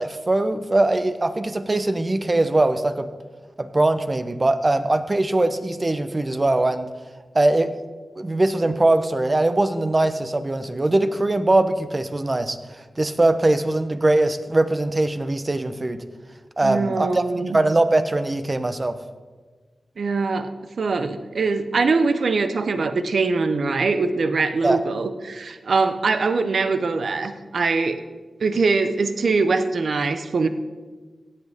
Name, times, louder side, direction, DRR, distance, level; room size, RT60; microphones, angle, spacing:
voice 1, 0.0-3.1 3.6-6.9 7.3-7.7 8.2-12.6 13.0-16.0 16.6-17.2 17.5-19.0 24.6-24.8, right 2 dB, 35° right, 10 dB, 0.9 m, -21 dB
voice 2, 16.6-17.6 20.0-28.0 28.4-30.5, right 4 dB, 75° right, 10 dB, 0.7 m, -22 dB
17.0 x 8.3 x 3.6 m, 1.4 s
cardioid pair, 40°, 0 cm